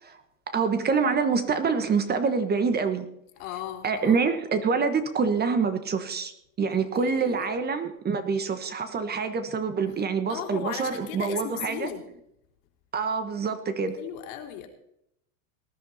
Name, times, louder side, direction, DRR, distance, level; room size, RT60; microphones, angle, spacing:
voice 1, 0.5-3.1 3.8-6.3 6.6-11.9 12.9-14.0, right 5 dB, 25° right, 10 dB, 1.3 m, -26 dB
voice 2, 3.4-4.2 7.0-7.5 10.3-12.0 14.0-14.7, left 10 dB, 70° left, 3 dB, 3.5 m, -36 dB
19.0 x 11.0 x 4.2 m, 0.79 s
supercardioid pair, 130°, 42 cm